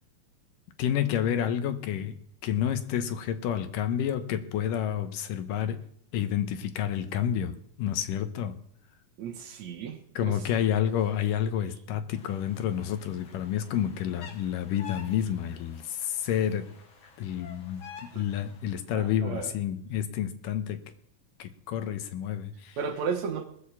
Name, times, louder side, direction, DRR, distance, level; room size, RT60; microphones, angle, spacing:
voice 1, 0.8-2.2 2.4-5.8 6.1-8.6 10.2-16.7 17.2-20.8 21.4-22.8, left 9 dB, 80° left, 2.5 m, -29 dB
voice 2, 9.2-10.4 18.1-18.2 18.9-19.5 22.8-23.4, right 6 dB, 65° right, 2.2 m, -34 dB
sound 1, 12.1-18.8, left 7 dB, 50° left, 1.9 m, -49 dB
19.5 x 6.6 x 7.2 m
omnidirectional pair, 3.8 m